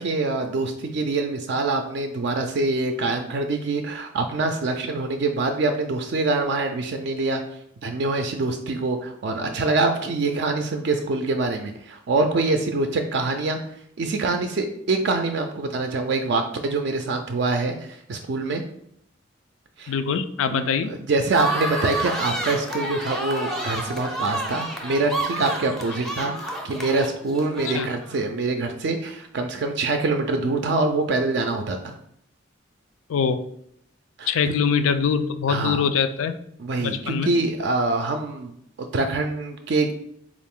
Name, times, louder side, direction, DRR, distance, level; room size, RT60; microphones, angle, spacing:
voice 1, 0.0-7.4 7.8-13.6 14.0-18.6 19.8-19.9 20.5-20.7 21.1-32.0 34.2-34.3 35.5-35.8 36.6-38.5 38.9-39.9, right 3 dB, 60° right, 5 dB, 0.4 m, -25 dB
voice 2, 19.9-21.0 27.6-27.9 33.1-33.5 34.3-36.4 36.8-37.3, left 6 dB, 90° left, 11 dB, 0.4 m, -23 dB
sound 1, 21.3-28.2, right 1 dB, ahead, 0.5 m, -30 dB
4.0 x 2.5 x 3.6 m, 0.70 s
head